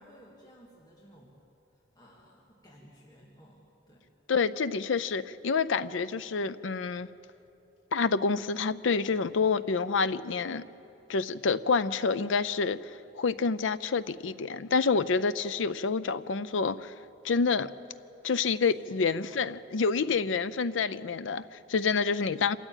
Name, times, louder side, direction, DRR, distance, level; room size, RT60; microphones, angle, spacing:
voice 1, 0.0-1.3 1.7-4.1 18.6-19.6 19.9-20.3 22.2-22.3, equal, 20° left, -4 dB, 2.0 m, -57 dB
voice 2, 4.3-7.1 7.9-10.7 11.1-16.9 17.2-17.7 18.2-22.6, left 4 dB, 90° left, 14 dB, 0.5 m, -28 dB
26.5 x 13.5 x 9.0 m, 2.9 s
head